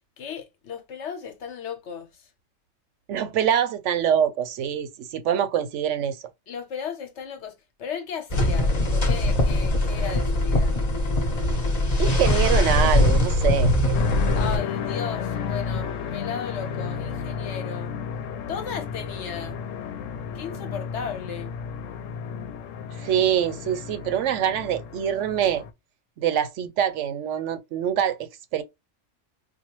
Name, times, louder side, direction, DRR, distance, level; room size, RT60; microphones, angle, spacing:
voice 1, 0.2-2.3 6.5-10.8 14.4-18.0 18.5-19.6 20.3-21.6, left 7 dB, 65° left, 1.1 m, -35 dB
voice 2, 3.1-6.2 12.0-14.0 23.0-25.6 26.2-28.6, right 9 dB, 75° right, 0.9 m, -25 dB
sound 1, 8.3-14.6, left 1 dB, 35° left, 0.9 m, -21 dB
sound 2, 13.9-25.7, left 6 dB, 85° left, 0.9 m, -32 dB
4.3 x 2.3 x 2.9 m
omnidirectional pair, 1.3 m